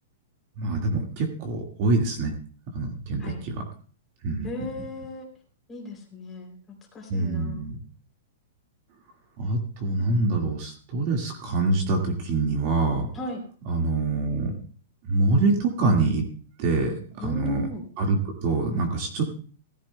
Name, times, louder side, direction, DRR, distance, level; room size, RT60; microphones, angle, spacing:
voice 1, 0.6-2.3 2.7-3.6 4.2-4.5 7.1-7.8 9.4-13.1 13.7-14.5 15.1-16.2 16.6-17.7 18.0-19.2, right 3 dB, 35° right, 2 dB, 1.8 m, -25 dB
voice 2, 4.4-5.3 5.7-6.6 6.9-7.7 13.1-13.4 17.2-17.9, left 2 dB, 10° left, 0 dB, 3.0 m, -35 dB
17.5 x 14.5 x 2.2 m, 0.42 s
supercardioid pair, 175°, 0 cm